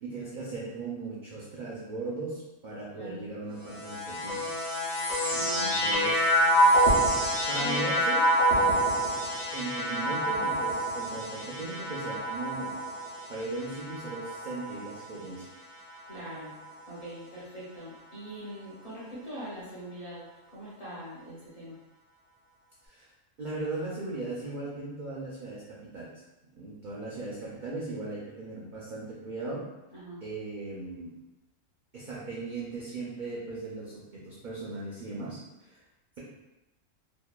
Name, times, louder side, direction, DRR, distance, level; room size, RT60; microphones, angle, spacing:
voice 1, 0.0-4.4 5.3-6.3 7.5-8.2 9.5-12.7 13.3-15.5 22.9-23.1 23.4-25.6 25.9-26.1 26.5-29.6 30.2-31.1 31.9-35.8, right 3 dB, 70° right, -6 dB, 0.4 m, -38 dB
sound 1, 3.6-15.1 15.9-16.6, right 1 dB, 70° left, 1.0 m, -27 dB
voice 2, 5.3-6.1 7.6-7.9 8.5-8.7 16.1-16.6 16.9-20.3 20.5-21.8 29.9-30.2, right 1 dB, 40° left, -9 dB, 0.6 m, -42 dB
2.8 x 2.2 x 2.2 m, 0.99 s
omnidirectional pair, 1.4 m